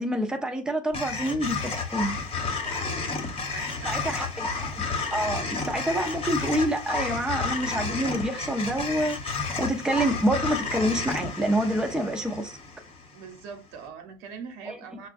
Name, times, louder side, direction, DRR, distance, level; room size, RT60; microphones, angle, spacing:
voice 1, 0.0-2.1 3.8-4.3 4.6-4.9 5.1-9.2 9.6-12.5 14.7-14.8, right 1 dB, 5° right, 0.7 m, -27 dB
sound 1, 0.9-13.2, left 4 dB, 30° left, 1.1 m, -31 dB
voice 2, 2.6-3.0 3.5-4.4 13.1-15.1, right 6 dB, 65° right, 1.0 m, -43 dB
5.8 x 2.3 x 2.5 m
hypercardioid pair, 90°, 18 cm